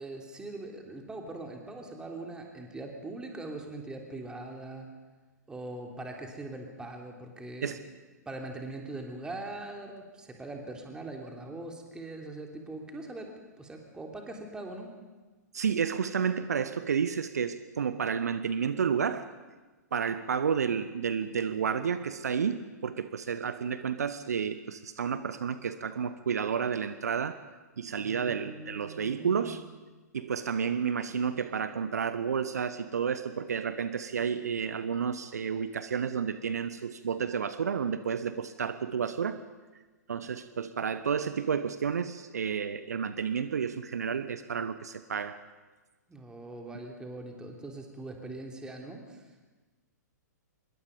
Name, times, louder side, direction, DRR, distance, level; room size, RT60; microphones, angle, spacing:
voice 1, 0.0-4.9 5.5-7.8 8.2-14.9 27.9-29.7 46.1-49.4, right 2 dB, 10° right, 1 dB, 3.3 m, -42 dB
voice 2, 15.5-19.3 19.9-27.4 27.8-29.6 30.1-39.4 40.1-45.4, right 7 dB, 60° right, 12 dB, 1.0 m, -31 dB
25.5 x 22.0 x 5.3 m, 1.3 s
figure-of-eight pair, 115°, 10 cm